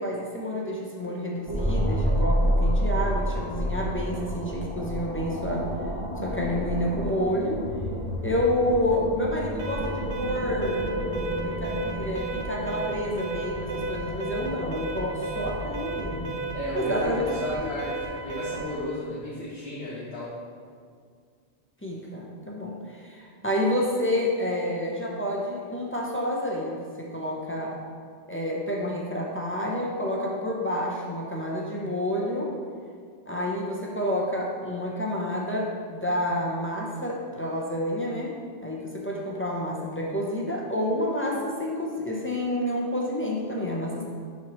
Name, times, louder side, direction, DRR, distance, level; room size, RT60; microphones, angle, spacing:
voice 1, 0.0-5.7 6.2-7.6 8.2-10.8 11.4-16.3 16.7-17.2 17.6-17.7 21.8-27.8 28.3-32.5 33.3-38.3 38.6-44.0, left 1 dB, 15° left, -3 dB, 0.5 m, -29 dB
sound 1, 1.5-18.7, equal, 25° right, 1.0 m, -30 dB
Alarm, 9.6-18.8, right 4 dB, 75° right, 1.0 m, -35 dB
voice 2, 16.5-20.3, left 1 dB, 65° left, -10 dB, 1.5 m, -33 dB
5.8 x 5.5 x 3.0 m, 2.1 s
omnidirectional pair, 1.2 m